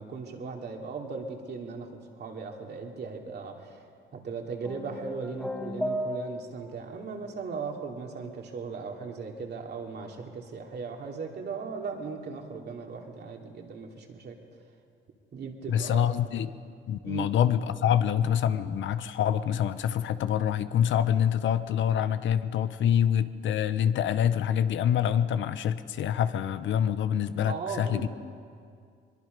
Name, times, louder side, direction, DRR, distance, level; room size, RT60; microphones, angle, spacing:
voice 1, 0.0-1.9 2.2-3.8 4.1-14.4 15.3-16.2 17.0-17.3 27.4-28.1, right 5 dB, 55° right, 1 dB, 2.9 m, -37 dB
sound 1, 4.6-6.7, equal, 5° left, 1.8 m, -34 dB
voice 2, 15.7-16.5 16.9-28.1, left 9 dB, 70° left, 12 dB, 0.9 m, -26 dB
22.5 x 22.0 x 5.3 m, 2.2 s
cardioid pair, 90°, 20 cm